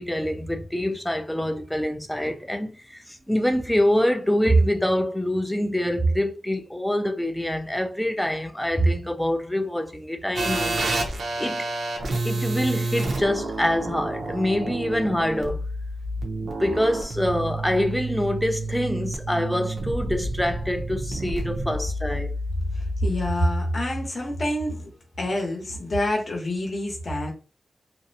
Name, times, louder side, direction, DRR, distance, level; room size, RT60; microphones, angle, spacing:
voice 1, 0.0-10.8 11.4-11.7 12.2-15.6 16.6-22.3, equal, 5° left, 0.4 m, -25 dB
sound 1, 10.4-23.3, right 2 dB, 80° right, 0.6 m, -29 dB
voice 2, 22.7-24.9 25.2-27.3, left 1 dB, 40° left, 0.8 m, -26 dB
2.6 x 2.0 x 2.6 m
wide cardioid pair, 140°, 0 cm